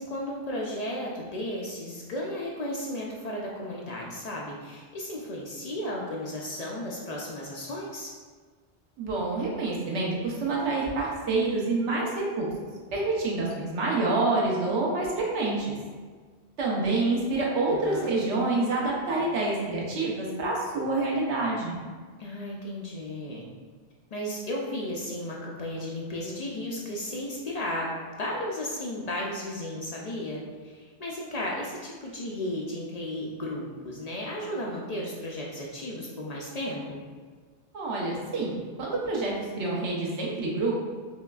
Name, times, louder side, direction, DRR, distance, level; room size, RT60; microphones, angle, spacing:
voice 1, 0.0-8.1 17.7-18.1 22.2-23.5 24.1-37.0, left 1 dB, 55° left, -3 dB, 0.4 m, -34 dB
voice 2, 9.0-12.5 12.9-15.7 16.6-21.8 37.7-40.7, right 2 dB, 90° right, -3 dB, 1.1 m, -27 dB
5.1 x 2.4 x 2.3 m, 1.5 s
omnidirectional pair, 1.1 m